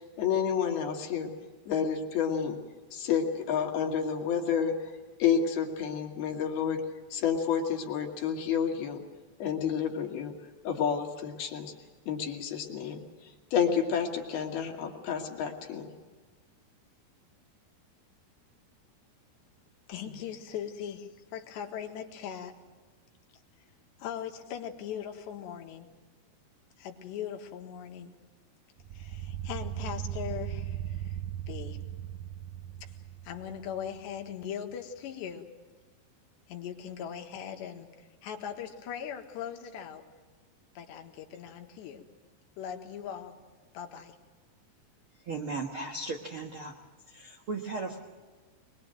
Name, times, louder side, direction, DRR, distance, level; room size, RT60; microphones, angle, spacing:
voice 1, 0.2-1.3 1.7-2.6 2.9-4.7 5.2-6.8 7.1-9.0 9.4-10.3 10.6-11.7 12.1-13.0 13.5-15.9, left 7 dB, 65° left, 2 dB, 4.1 m, -29 dB
voice 2, 19.9-22.5 24.0-25.9 26.8-28.1 28.9-31.2 31.5-31.8 32.8-32.9 33.2-35.5 36.5-40.1 40.8-42.0 42.6-43.4 43.7-44.2, left 9 dB, 85° left, 4 dB, 3.9 m, -40 dB
sound 1, 28.8-34.1, right 11 dB, 90° right, 1.8 m, -38 dB
voice 3, 45.2-46.8 47.1-48.0, right 3 dB, 60° right, 3 dB, 1.3 m, -36 dB
23.0 x 22.0 x 7.8 m, 1.4 s
omnidirectional pair, 4.8 m